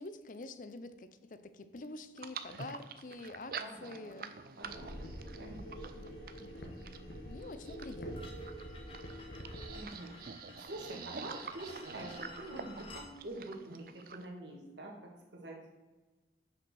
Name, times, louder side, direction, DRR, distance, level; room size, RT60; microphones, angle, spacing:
voice 1, 0.0-4.3 4.8-4.9 5.9-8.4, left 2 dB, 50° left, 11 dB, 0.5 m, -48 dB
sound 1, 2.2-14.3, right 5 dB, 55° right, 0.5 m, -47 dB
voice 2, 3.6-4.1 4.6-5.0 5.4-5.9 9.7-15.7, right 1 dB, 85° right, 0 dB, 1.9 m, -46 dB
sound 2, 4.6-9.8, equal, 80° left, 1.2 m, -46 dB
sound 3, 8.2-13.1, left 2 dB, 30° left, 1.1 m, -53 dB
6.2 x 5.3 x 6.2 m, 1.3 s
head